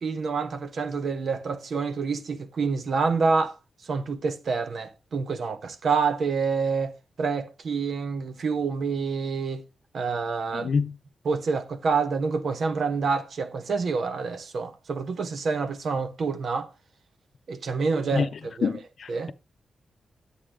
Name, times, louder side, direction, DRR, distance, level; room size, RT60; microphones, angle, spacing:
voice 1, 0.0-3.6 3.9-9.6 9.9-10.7 11.2-16.7 17.5-18.8 19.1-19.3, right 4 dB, 60° right, 1.2 m, -27 dB
voice 2, 10.5-11.0 18.1-18.3 18.6-19.3, left 5 dB, 65° left, 0.6 m, -27 dB
9.9 x 8.5 x 3.7 m
wide cardioid pair, 110°, 0 cm